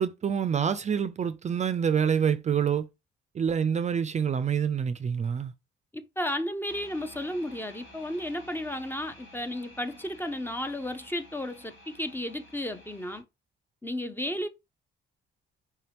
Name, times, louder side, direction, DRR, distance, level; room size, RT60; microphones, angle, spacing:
voice 1, 0.0-2.9 3.3-5.5, right 7 dB, 35° right, 0.4 m, -26 dB
voice 2, 5.9-13.2 13.8-14.5, left 1 dB, 10° left, 0.6 m, -33 dB
sound 1, 6.7-13.2, equal, 70° left, 2.4 m, -52 dB
4.6 x 2.9 x 3.3 m
cardioid pair, 90°, 20 cm